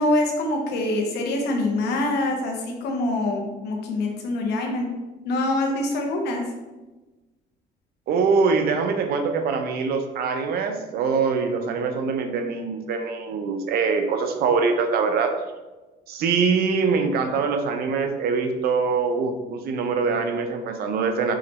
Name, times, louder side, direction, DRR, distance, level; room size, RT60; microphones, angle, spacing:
voice 1, 0.0-4.9 5.2-6.4, left 2 dB, 75° left, 2 dB, 0.9 m, -25 dB
voice 2, 8.1-15.4 16.1-21.3, right 5 dB, 65° right, 6 dB, 0.6 m, -23 dB
4.8 x 3.1 x 3.0 m, 1.2 s
cardioid pair, 110°, 17 cm